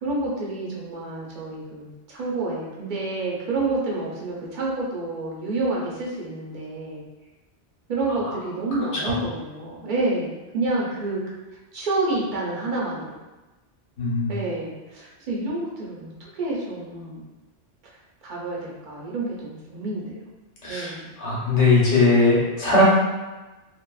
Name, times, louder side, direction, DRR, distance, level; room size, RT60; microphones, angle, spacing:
voice 1, 0.0-7.0 7.9-11.2 11.7-13.2 14.3-17.2 18.2-20.2 20.7-21.2, right 2 dB, 50° right, -5 dB, 0.7 m, -29 dB
voice 2, 14.0-14.3 20.6-20.9 21.2-22.8, left 2 dB, 75° left, -6 dB, 1.2 m, -19 dB
2.6 x 2.4 x 2.3 m, 1.1 s
omnidirectional pair, 1.2 m